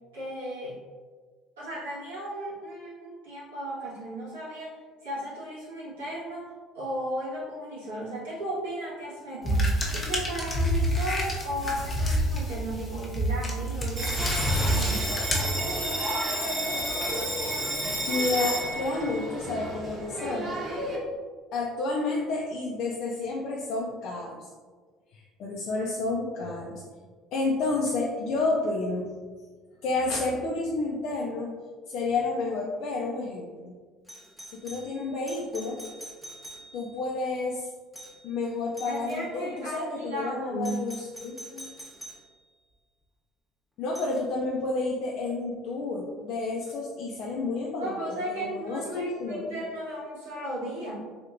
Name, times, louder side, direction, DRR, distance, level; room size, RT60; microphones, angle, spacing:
voice 1, 0.1-0.8 1.6-15.2 38.8-40.9 47.8-51.0, right 1 dB, 90° right, -9 dB, 1.4 m, -35 dB
sound 1, 9.4-16.1, equal, 30° left, 0.8 m, -28 dB
Bell, 14.0-21.0, equal, 40° right, 1.1 m, -31 dB
voice 2, 18.1-20.6 21.5-24.5 25.1-26.8 27.3-29.1 29.8-31.5 31.9-33.7 34.5-35.8 36.7-37.7 38.2-40.9 41.2-41.7 43.8-47.9 48.2-49.6, left 3 dB, 60° left, -3 dB, 0.4 m, -30 dB
Doorbell, 34.1-37.0 37.9-38.3 38.7-39.3 40.6-42.3 44.0-44.2 46.6-46.7, right 1 dB, 5° right, 0.8 m, -45 dB
3.3 x 2.8 x 2.5 m, 1.5 s
hypercardioid pair, 65°, 0 cm